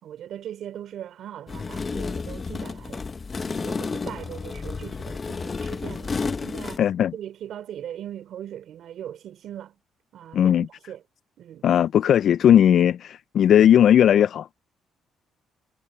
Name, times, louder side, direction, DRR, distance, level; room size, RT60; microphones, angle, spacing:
voice 1, 0.0-3.0 3.5-6.8 7.1-9.8 10.1-10.5 10.9-11.0 11.4-11.6, right 10 dB, 75° right, 3.3 m, -39 dB
sound 1, 1.5-6.8, left 4 dB, 35° left, 1.1 m, -31 dB
voice 2, 6.8-7.1 10.3-10.7 11.6-14.5, left 10 dB, 65° left, 0.4 m, -17 dB
cardioid pair, 90°, 0 cm